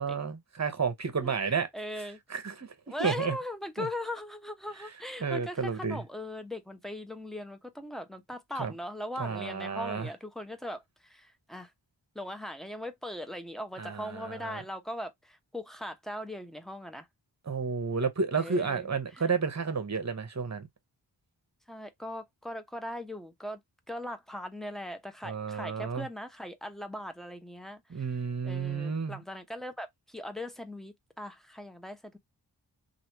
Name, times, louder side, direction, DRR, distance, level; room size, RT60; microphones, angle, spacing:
voice 1, 0.0-1.7 2.3-2.7 3.0-3.3 3.8-3.9 5.2-6.0 8.6-8.7 9.2-10.1 13.8-14.6 17.5-20.7 25.2-26.0 27.9-29.2, right 5 dB, 40° right, 1.1 m, -31 dB
voice 2, 1.2-2.2 2.9-11.7 12.1-17.1 18.3-19.3 21.7-23.6 23.9-28.1 28.4-32.2, left 1 dB, ahead, 0.9 m, -40 dB
3.1 x 2.7 x 2.9 m
cardioid pair, 40°, 44 cm